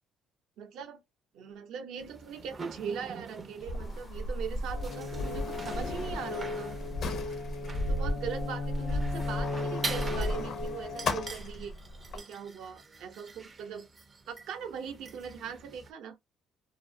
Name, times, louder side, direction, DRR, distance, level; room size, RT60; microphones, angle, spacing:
voice 1, 0.6-1.0 1.3-6.8 7.7-11.7 12.1-13.9 14.3-16.2, right 7 dB, 75° right, 0.6 m, -40 dB
sound 1, 2.0-15.9, right 3 dB, 30° right, 0.4 m, -45 dB
Sliding door, 3.6-12.2, left 1 dB, 60° left, 0.5 m, -35 dB
sound 2, 4.7-11.3, left 3 dB, 80° left, 1.0 m, -37 dB
2.4 x 2.0 x 2.5 m
cardioid pair, 90°, 0 cm